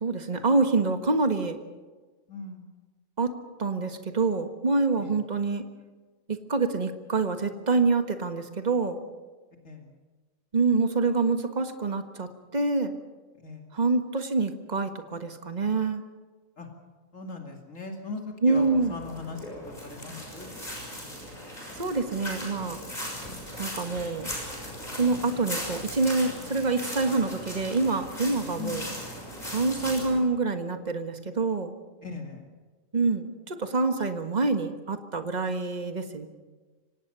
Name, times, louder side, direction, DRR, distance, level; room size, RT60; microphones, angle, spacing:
voice 1, 0.0-1.6 3.2-3.3 3.6-5.6 6.3-9.0 10.5-12.9 13.7-16.0 18.4-19.0 21.8-22.8 23.6-24.3 24.9-28.8 29.4-31.7 32.9-36.3, right 3 dB, 35° right, 7 dB, 1.6 m, -26 dB
voice 2, 2.3-2.6 5.0-5.1 9.6-9.9 13.4-13.7 16.6-16.7 17.1-19.5 19.8-20.5 28.6-28.8 32.0-32.4, left 4 dB, 75° left, 2 dB, 2.9 m, -39 dB
sound 1, 18.5-30.2, equal, 30° left, 6.8 m, -38 dB
25.0 x 18.0 x 6.9 m, 1.3 s
omnidirectional pair, 1.3 m